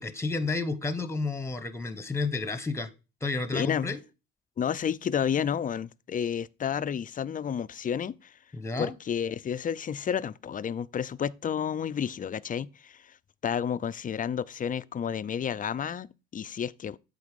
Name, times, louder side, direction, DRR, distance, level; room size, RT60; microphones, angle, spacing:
voice 1, 0.0-2.9 3.2-4.0 8.5-8.9, left 3 dB, 10° left, 1.0 m, -31 dB
voice 2, 3.5-4.0 4.6-8.3 8.8-13.2 13.4-17.0, left 8 dB, 25° left, 0.4 m, -31 dB
8.1 x 3.9 x 5.0 m
supercardioid pair, 80°, 31 cm